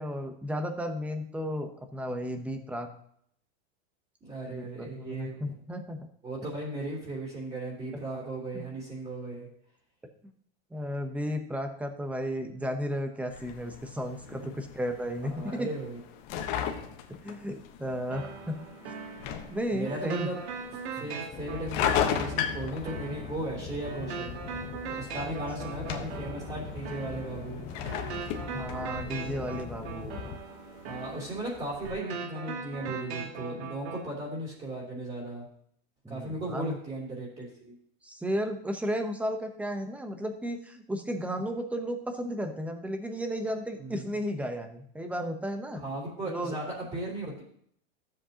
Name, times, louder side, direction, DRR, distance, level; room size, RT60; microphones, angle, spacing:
voice 1, 0.0-2.9 4.4-6.1 8.5-8.6 10.7-15.7 17.2-18.6 19.5-20.3 21.0-21.1 28.4-30.2 36.0-36.8 38.0-45.8 46.3-46.6, equal, 5° right, 6 dB, 0.8 m, -34 dB
voice 2, 4.2-5.5 6.2-9.5 14.4-14.5 15.2-16.0 19.7-20.4 20.7-24.4 25.0-27.6 30.9-35.5 36.1-37.8 43.8-44.1 45.7-47.4, right 1 dB, 20° right, -4 dB, 3.0 m, -36 dB
sound 1, 13.3-31.9, left 8 dB, 50° left, 1.2 m, -37 dB
sound 2, 18.1-34.1, right 5 dB, 85° right, 1.7 m, -40 dB
sound 3, 21.3-30.4, left 6 dB, 25° left, 0.9 m, -41 dB
13.0 x 7.6 x 2.9 m, 0.67 s
supercardioid pair, 155°, 32 cm